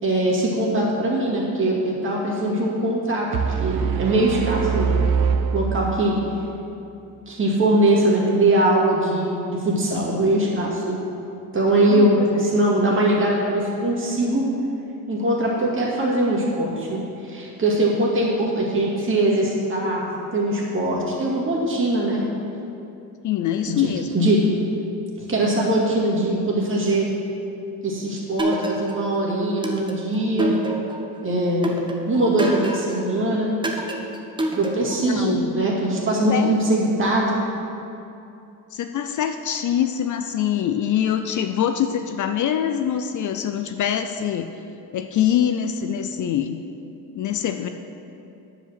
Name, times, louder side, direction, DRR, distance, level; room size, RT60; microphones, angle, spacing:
voice 1, 0.0-3.3 3.6-4.9 5.5-6.2 7.3-11.0 11.5-14.5 15.1-20.0 20.3-22.2 23.8-23.9 24.1-24.4 25.2-27.1 27.8-30.6 31.2-31.8 32.1-33.5 34.5-37.4, right 1 dB, 30° right, -4 dB, 2.2 m, -21 dB
sound 1, 3.3-6.4, right 6 dB, 65° right, 0.6 m, -23 dB
voice 2, 11.9-12.3 23.2-24.3 35.1-35.5 36.3-36.6 38.7-44.5 44.9-46.6 47.2-47.7, left 9 dB, 50° left, 7 dB, 0.5 m, -24 dB
sound 2, 28.4-29.1 29.6-31.1 31.6-33.0 33.6-35.1, right 1 dB, 10° right, 0.8 m, -27 dB
9.8 x 5.1 x 7.5 m, 2.8 s
cardioid pair, 145°, 39 cm